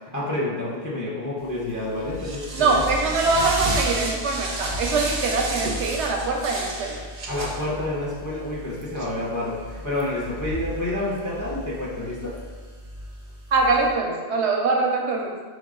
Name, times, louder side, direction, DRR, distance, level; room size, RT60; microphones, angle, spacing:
voice 1, 0.1-2.8 7.3-12.3, left 1 dB, 25° left, -6 dB, 0.4 m, -29 dB
sound 1, 1.5-13.9, right 1 dB, 45° right, 0.5 m, -33 dB
voice 2, 2.5-7.0 9.0-9.1 13.5-15.3, right 3 dB, 70° right, 1 dB, 0.8 m, -23 dB
4.7 x 2.5 x 3.6 m, 1.4 s
omnidirectional pair, 1.2 m